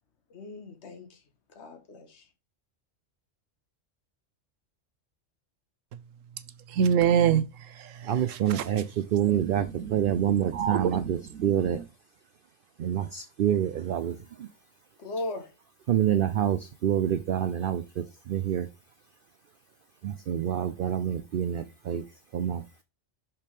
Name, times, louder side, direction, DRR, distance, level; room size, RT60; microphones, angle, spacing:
voice 1, 0.3-1.2 1.5-2.3 15.0-15.5, left 2 dB, 60° left, 1.5 m, -38 dB
voice 2, 6.7-8.6 9.2-9.4 9.8-11.8, right 8 dB, 80° right, 1.1 m, -27 dB
voice 3, 8.0-11.8 12.8-14.5 15.9-18.7 20.0-22.1 22.3-22.6, right 10 dB, 60° right, 0.6 m, -27 dB
6.0 x 5.7 x 3.4 m
omnidirectional pair, 1.3 m